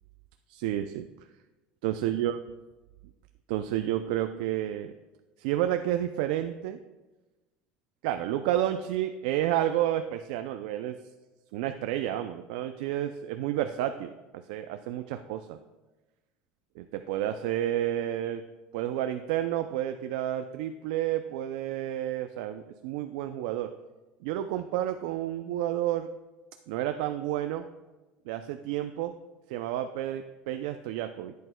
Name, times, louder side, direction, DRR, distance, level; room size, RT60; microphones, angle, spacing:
voice 1, 0.5-1.1 1.8-2.4 3.5-4.9 5.4-6.8 8.0-11.0 11.5-14.1 14.5-15.6 16.8-18.4 18.7-23.7 24.2-26.1 26.7-27.7 28.3-29.1 29.5-31.3, right 12 dB, 80° right, 8 dB, 0.4 m, -30 dB
10.5 x 8.3 x 2.2 m, 1.1 s
supercardioid pair, 135°, 4 cm